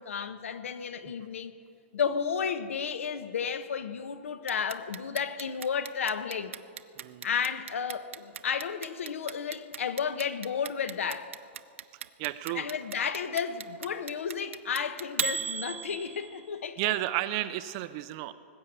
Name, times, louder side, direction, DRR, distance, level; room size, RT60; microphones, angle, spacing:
voice 1, 0.0-1.5 1.9-6.6 7.2-11.3 12.5-16.9, left 7 dB, 80° left, 1.0 m, -32 dB
Clock, 4.5-16.5, right 8 dB, 75° right, 0.6 m, -36 dB
voice 2, 12.2-12.7 16.8-18.3, right 16 dB, 25° right, 0.4 m, -32 dB
19.5 x 7.8 x 8.7 m
hypercardioid pair, 175°, 7 cm